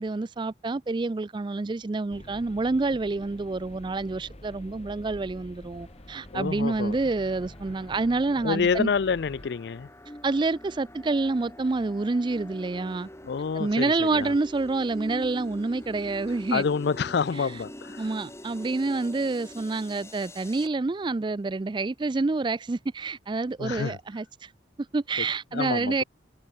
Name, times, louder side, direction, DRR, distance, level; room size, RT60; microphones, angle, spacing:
voice 1, 0.0-8.9 10.2-13.1 13.5-16.6 18.0-24.5 24.9-26.0, right 3 dB, 25° right, 0.4 m, -28 dB
sound 1, 2.1-9.5, left 1 dB, 35° left, 2.4 m, -47 dB
sound 2, 5.7-20.7, equal, 15° left, 7.3 m, -45 dB
voice 2, 6.3-7.0 8.4-9.9 13.2-14.3 16.5-18.1 23.6-24.0 25.2-25.3 25.5-26.0, left 5 dB, 60° left, 0.4 m, -28 dB
head